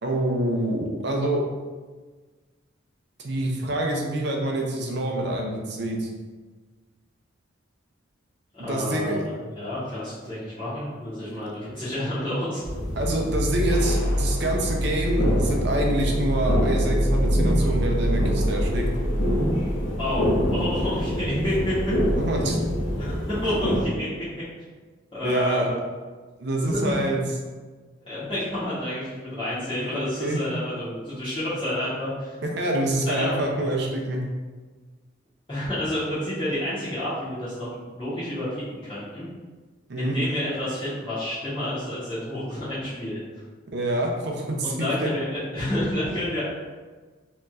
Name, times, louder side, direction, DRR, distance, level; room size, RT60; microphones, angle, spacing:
voice 1, 0.0-1.4 3.2-6.1 8.6-9.2 11.2-11.3 13.0-18.9 22.2-22.6 25.2-25.7 26.4-27.2 29.8-29.9 30.2-30.4 32.4-34.2 39.9-40.2 43.7-45.1, right 1 dB, 60° right, 1 dB, 0.6 m, -26 dB
voice 2, 8.5-12.6 20.0-21.8 23.0-24.1 25.1-25.7 26.6-27.1 28.1-32.4 33.1-33.5 35.5-39.3 40.0-43.2 44.6-46.4, left 1 dB, 25° left, -14 dB, 1.3 m, -29 dB
sound 1, 12.6-23.9, equal, 80° left, 0.9 m, -24 dB
4.5 x 3.0 x 2.4 m, 1.4 s
head